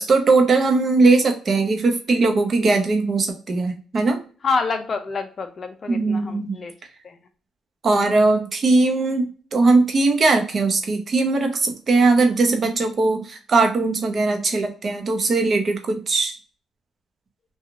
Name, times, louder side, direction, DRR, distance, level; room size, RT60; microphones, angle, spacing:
voice 1, 0.0-4.2 5.9-6.6 7.8-16.3, right 3 dB, 45° right, 4 dB, 0.7 m, -19 dB
voice 2, 4.4-6.7 7.0-7.2, left 4 dB, 40° left, 7 dB, 0.4 m, -27 dB
3.0 x 2.3 x 2.4 m, 0.39 s
cardioid pair, 90°, 0 cm